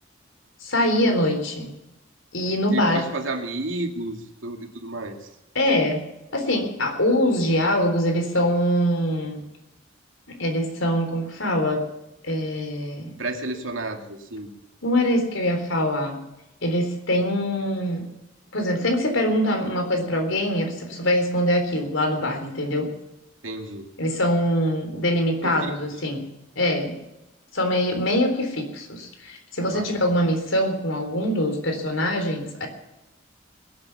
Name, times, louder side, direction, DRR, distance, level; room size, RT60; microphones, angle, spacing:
voice 1, 0.6-1.7 2.3-3.1 5.5-6.0 6.3-9.4 10.3-11.8 12.2-13.2 14.8-16.2 16.6-18.1 18.5-22.9 24.0-26.3 26.6-27.0 27.5-32.7, equal, 80° left, 5 dB, 3.8 m, -23 dB
voice 2, 2.7-5.2 13.2-14.5 23.4-23.9 25.4-25.7 29.7-29.9, right 2 dB, 85° right, 4 dB, 2.4 m, -31 dB
21.0 x 8.6 x 7.1 m, 0.92 s
head